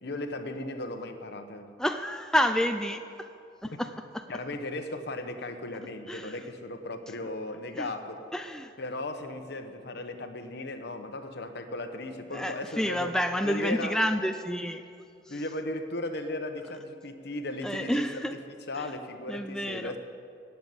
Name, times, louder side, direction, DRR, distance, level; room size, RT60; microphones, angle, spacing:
voice 1, 0.0-1.7 4.3-8.2 8.8-13.1 13.4-14.0 15.3-18.4 18.7-20.0, left 2 dB, 60° left, 7 dB, 1.1 m, -36 dB
voice 2, 1.8-3.3 3.6-4.2 6.1-6.3 7.8-7.9 8.3-8.7 12.3-14.8 15.3-15.4 17.6-18.3 18.8-18.9 19.3-19.9, equal, 5° left, 6 dB, 0.4 m, -29 dB
15.0 x 7.1 x 9.5 m, 2.4 s
head